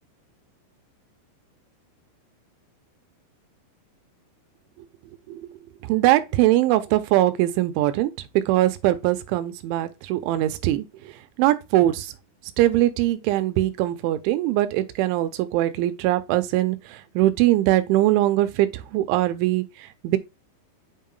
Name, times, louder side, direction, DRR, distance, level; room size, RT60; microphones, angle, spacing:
voice 1, 5.8-8.1 8.4-11.1 11.4-12.1 12.6-19.6 20.0-20.2, right 15 dB, 90° right, 3.1 m, -21 dB
7.3 x 5.6 x 2.4 m
omnidirectional pair, 5.4 m